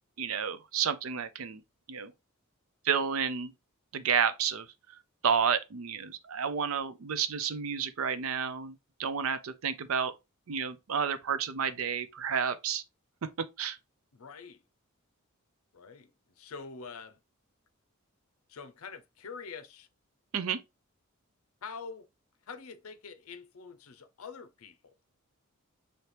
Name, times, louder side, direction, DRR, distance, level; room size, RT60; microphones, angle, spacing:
voice 1, 0.2-1.6 1.9-2.1 2.8-3.5 3.9-5.0 5.2-10.1 10.5-12.8 13.4-13.8 20.3-20.6, right 7 dB, 75° right, 0.5 m, -31 dB
voice 2, 14.1-14.6 15.7-17.2 18.5-19.9 21.6-22.1 22.5-24.9, left 5 dB, 80° left, 0.6 m, -45 dB
4.3 x 2.8 x 3.3 m
head